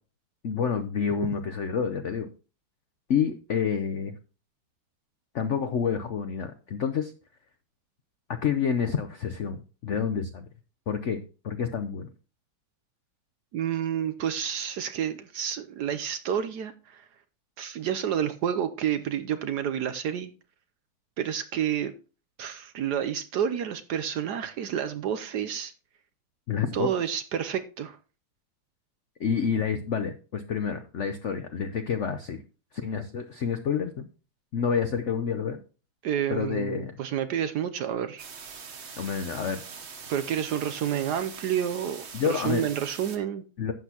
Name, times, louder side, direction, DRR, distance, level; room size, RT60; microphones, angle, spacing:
voice 1, 0.4-2.3 3.1-4.1 5.3-7.1 8.4-10.5 10.9-12.1 26.5-26.9 29.2-32.4 32.7-34.1 34.5-35.6 36.3-37.0 39.0-39.6 42.1-42.6 43.6-43.7, left 7 dB, 85° left, 0.6 m, -28 dB
voice 2, 13.5-17.0 17.6-20.3 21.2-21.9 22.4-25.7 26.7-28.0 36.0-38.3 40.1-43.4, right 9 dB, 70° right, 1.0 m, -29 dB
sound 1, 38.2-43.2, right 6 dB, 45° right, 1.0 m, -43 dB
11.5 x 8.2 x 2.9 m
omnidirectional pair, 2.2 m